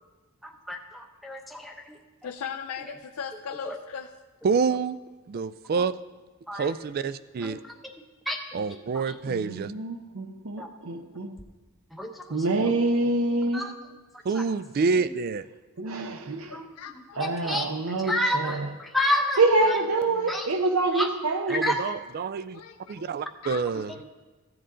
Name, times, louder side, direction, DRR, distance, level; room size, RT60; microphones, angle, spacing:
voice 1, 0.4-2.0 3.6-3.8 5.8-5.9 6.5-6.7 7.4-7.6 8.3-8.4 8.7-8.8 9.1-9.2 10.6-10.7 11.9-12.7 13.5-13.7 15.8-15.9 16.5-16.7 17.2-17.7 18.0-19.4 20.3-20.5 20.9-21.1 21.5-21.8 23.9-24.0, left 1 dB, ahead, 0.7 m, -30 dB
voice 2, 2.2-4.1 16.5-17.2 19.6-20.3 22.5-23.9, left 7 dB, 80° left, 0.5 m, -39 dB
voice 3, 4.4-5.0 5.3-5.9 6.5-7.6 8.5-9.7 14.2-15.5 21.5-22.6 22.9-23.9, right 5 dB, 45° right, 0.3 m, -27 dB
voice 4, 9.3-11.4 12.3-13.7 15.8-16.6 17.2-18.7 19.4-21.7, right 2 dB, 70° right, 0.7 m, -26 dB
15.0 x 7.8 x 3.8 m
head